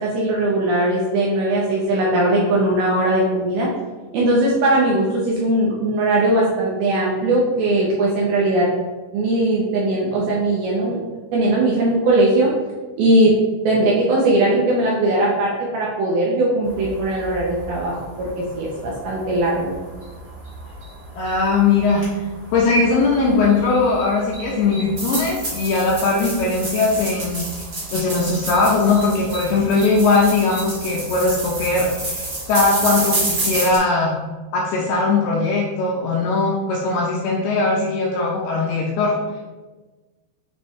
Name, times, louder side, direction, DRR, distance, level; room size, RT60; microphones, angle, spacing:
voice 1, 0.0-3.7 4.1-8.7 9.1-11.0 11.3-12.5 13.0-13.4 13.6-19.8, right 1 dB, 75° right, -4 dB, 2.4 m, -19 dB
sound 1, 16.6-33.8, right 2 dB, 45° right, 1.6 m, -30 dB
voice 2, 21.2-22.0 22.5-27.5 27.9-34.1 34.5-39.4, left 3 dB, 80° left, -3 dB, 2.3 m, -19 dB
9.3 x 3.4 x 3.2 m, 1.3 s
omnidirectional pair, 5.3 m